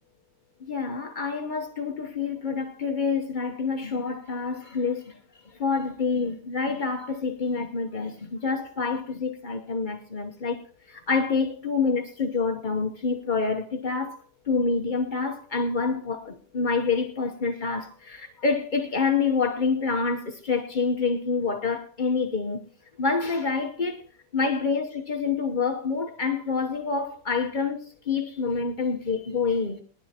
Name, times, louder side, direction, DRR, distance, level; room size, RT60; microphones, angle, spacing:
voice 1, 0.6-5.2 5.5-22.7 23.0-24.0 24.3-27.8 28.0-29.8, left 4 dB, 60° left, 0.5 m, -27 dB
20.5 x 12.5 x 2.9 m
omnidirectional pair, 2.4 m